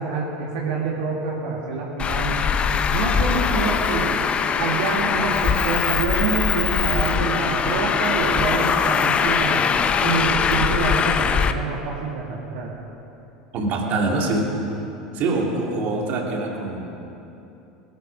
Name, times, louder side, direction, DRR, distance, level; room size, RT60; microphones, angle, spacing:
voice 1, 0.0-2.5 2.9-4.2 4.6-9.7 10.0-12.7, right 4 dB, 65° right, -3 dB, 2.3 m, -26 dB
Traffic noise roadway noise, 2.0-11.5, left 6 dB, 30° left, 0.8 m, -21 dB
voice 2, 13.5-14.6 15.1-16.9, right 2 dB, 50° right, 0 dB, 2.9 m, -24 dB
20.5 x 12.5 x 5.4 m, 2.9 s
hypercardioid pair, 80°, 4 cm